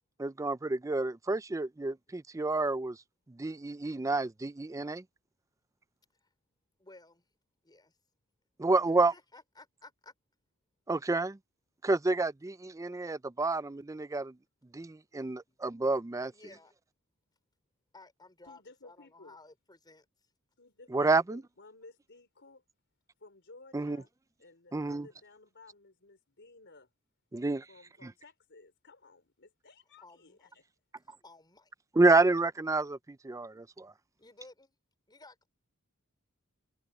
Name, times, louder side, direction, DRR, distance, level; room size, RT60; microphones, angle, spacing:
voice 1, 0.2-3.0 3.4-5.0 8.6-9.1 10.9-11.4 11.8-14.3 14.7-16.3 20.9-21.4 23.7-24.0 24.7-25.1 27.3-27.6 28.0-28.1 32.0-33.9, right 3 dB, 15° right, 0.4 m, -29 dB
voice 2, 6.8-7.2 7.6-7.9 9.1-10.1 15.5-15.6 16.3-16.7 17.9-20.1 30.0-30.5 31.0-31.7 34.2-34.8 35.1-35.5, left 2 dB, 20° left, 4.7 m, -55 dB
voice 3, 18.4-19.4 20.6-22.6 23.2-24.1 24.4-26.9 27.7-30.6, left 3 dB, 55° left, 4.5 m, -56 dB
head